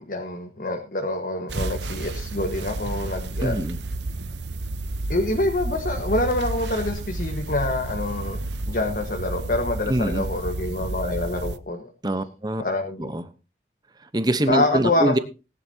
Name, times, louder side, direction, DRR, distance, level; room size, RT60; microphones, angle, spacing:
voice 1, 0.0-3.6 5.1-8.4 8.7-11.9 12.6-13.1 14.5-15.2, left 2 dB, 50° left, 3 dB, 1.5 m, -26 dB
sound 1, 1.5-11.6, right 2 dB, 80° right, 0.8 m, -31 dB
voice 2, 3.4-3.8 9.9-10.3 12.0-12.6 13.0-13.3 14.1-15.2, right 1 dB, 20° right, 11 dB, 1.0 m, -24 dB
19.0 x 11.0 x 2.8 m, 0.30 s
head